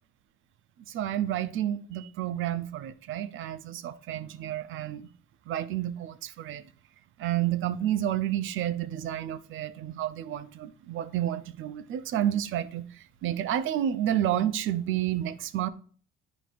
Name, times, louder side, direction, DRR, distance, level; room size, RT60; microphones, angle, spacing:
voice 1, 0.9-5.1 5.5-6.7 7.2-15.7, right 11 dB, 80° right, 0.5 m, -30 dB
9.4 x 5.0 x 2.5 m
cardioid pair, 90°, 20 cm